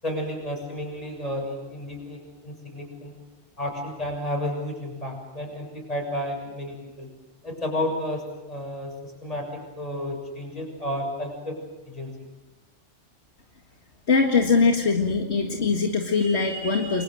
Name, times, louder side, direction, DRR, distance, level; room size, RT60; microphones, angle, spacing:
voice 1, 0.0-3.1 3.6-7.1 7.4-8.2 8.5-8.9 9.2-11.6 11.9-12.1, left 1 dB, 35° left, 1 dB, 7.2 m, -31 dB
voice 2, 14.1-17.0, left 4 dB, 70° left, 2 dB, 2.2 m, -22 dB
30.0 x 24.0 x 7.8 m, 1.0 s
omnidirectional pair, 1.2 m